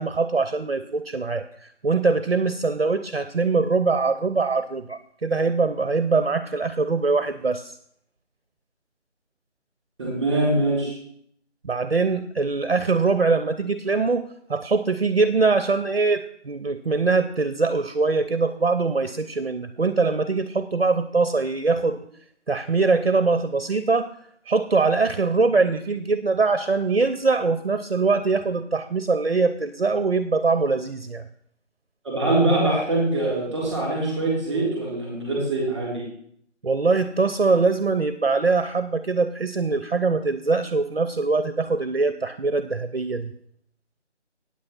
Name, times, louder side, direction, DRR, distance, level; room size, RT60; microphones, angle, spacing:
voice 1, 0.0-7.8 11.6-22.0 22.5-24.1 24.5-31.2 36.6-43.3, right 4 dB, 55° right, 11 dB, 0.7 m, -23 dB
voice 2, 10.0-10.9 32.0-36.0, right 2 dB, 10° right, -3 dB, 3.2 m, -23 dB
8.6 x 8.2 x 5.8 m, 0.66 s
figure-of-eight pair, 170°, 36 cm